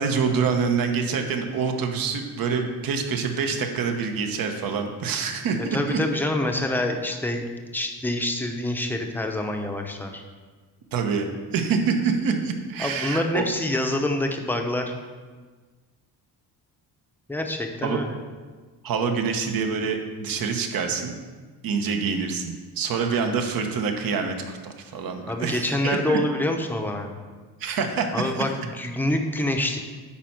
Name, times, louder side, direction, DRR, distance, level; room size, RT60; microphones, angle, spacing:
voice 1, 0.0-6.0 10.9-13.4 17.8-18.0 18.8-21.2 21.6-26.2 27.6-28.3, right 5 dB, 55° right, 5 dB, 1.1 m, -26 dB
voice 2, 5.7-10.2 12.8-14.9 17.3-18.1 25.3-27.1 28.1-29.8, left 1 dB, 5° left, 3 dB, 0.8 m, -26 dB
10.0 x 4.3 x 5.9 m, 1.4 s
cardioid pair, 125°, 41 cm